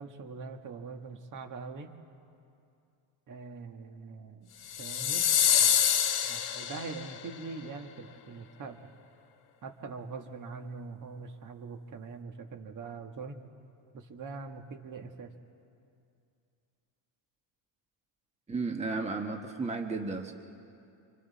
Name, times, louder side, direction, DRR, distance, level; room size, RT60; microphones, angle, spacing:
voice 1, 0.0-1.9 3.3-4.5 4.8-5.2 5.6-5.8 6.2-8.8 9.6-13.4 13.9-15.3, right 4 dB, 40° right, 5 dB, 1.7 m, -43 dB
sound 1, 4.7-7.1, left 9 dB, 45° left, 1.4 m, -26 dB
voice 2, 18.5-20.3, right 3 dB, 15° right, 3 dB, 1.2 m, -33 dB
29.0 x 26.0 x 4.2 m, 2.5 s
cardioid pair, 140°, 50 cm